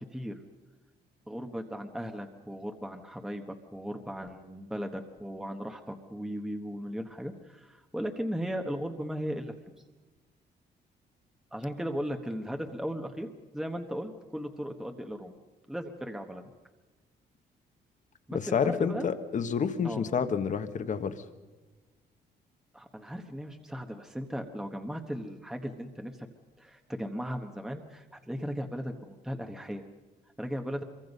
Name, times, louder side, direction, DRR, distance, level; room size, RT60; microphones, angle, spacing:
voice 1, 1.3-9.5 11.5-15.4 15.7-16.4 18.3-19.1 19.8-20.0 22.7-26.3 26.6-29.8 30.4-30.8, equal, 5° right, 5 dB, 1.2 m, -37 dB
voice 2, 18.5-21.2, left 6 dB, 45° left, 10 dB, 1.4 m, -29 dB
26.0 x 23.5 x 5.4 m, 1.3 s
cardioid pair, 150°, 18 cm